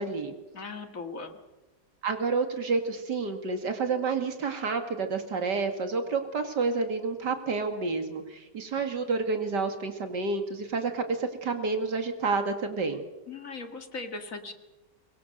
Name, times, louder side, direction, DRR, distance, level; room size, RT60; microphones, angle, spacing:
voice 1, 0.0-0.4 2.0-13.0, right 4 dB, 75° right, 6 dB, 2.7 m, -29 dB
voice 2, 0.5-1.3 13.3-14.5, left 3 dB, 50° left, 7 dB, 2.1 m, -38 dB
24.0 x 22.0 x 6.6 m, 1.1 s
omnidirectional pair, 1.9 m